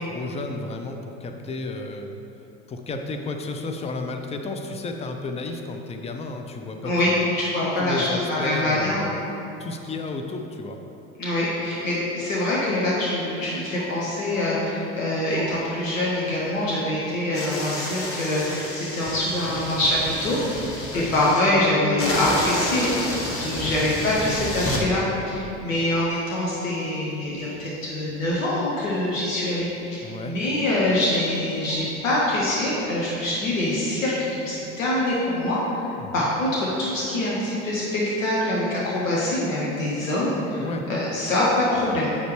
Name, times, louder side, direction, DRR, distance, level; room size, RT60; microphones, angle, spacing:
voice 1, 0.1-2.1 2.7-7.3 7.8-9.1 9.6-10.8 20.9-21.1 23.6-23.8 30.0-30.4 36.0-36.3 40.6-40.9, left 3 dB, 15° left, 4 dB, 0.5 m, -32 dB
voice 2, 6.8-9.0 11.2-22.9 23.4-35.8 36.1-42.1, left 1 dB, 90° left, -6 dB, 1.0 m, -24 dB
sound 1, 17.3-21.4 22.0-24.8, left 1 dB, 35° left, 1.2 m, -30 dB
8.3 x 5.0 x 3.1 m, 3.0 s
hypercardioid pair, 70°, 39 cm